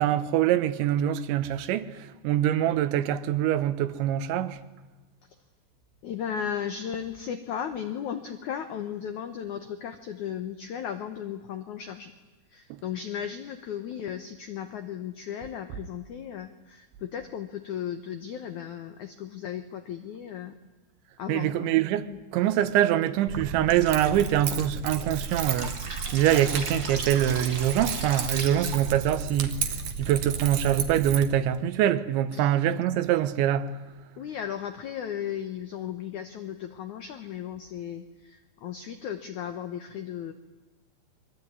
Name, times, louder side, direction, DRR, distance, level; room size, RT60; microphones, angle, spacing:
voice 1, 0.0-4.6 21.3-25.7 26.1-29.7 30.0-33.8, right 11 dB, 85° right, 3.4 m, -24 dB
voice 2, 6.0-12.1 12.5-20.6 21.2-21.7 22.1-22.2 32.3-32.6 34.2-40.3, left 9 dB, 80° left, 1.7 m, -35 dB
Keys jangling, 23.3-31.3, right 6 dB, 55° right, 2.5 m, -33 dB
Drip, 23.7-29.3, right 3 dB, 25° right, 2.5 m, -38 dB
27.5 x 22.5 x 9.6 m
omnidirectional pair, 5.1 m